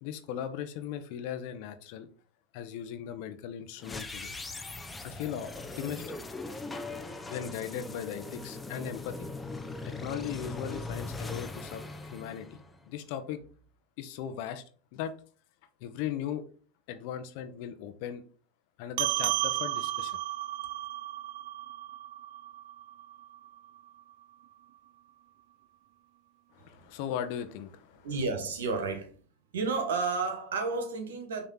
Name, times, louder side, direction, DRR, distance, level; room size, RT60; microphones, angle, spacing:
voice 1, 0.0-2.1 2.5-4.4 5.0-6.2 7.3-9.3 9.8-13.4 14.0-14.6 14.9-15.1 15.8-16.4 16.9-18.2 18.8-20.2 26.5-28.1, left 9 dB, 60° left, 1.0 m, -38 dB
sound 1, 3.8-13.0, left 3 dB, 15° left, 0.8 m, -40 dB
sound 2, 19.0-23.8, right 15 dB, 65° right, 0.4 m, -33 dB
voice 2, 28.0-29.1 29.5-31.5, right 4 dB, 80° right, 1.6 m, -31 dB
6.0 x 3.3 x 5.6 m
hypercardioid pair, 100°, 0 cm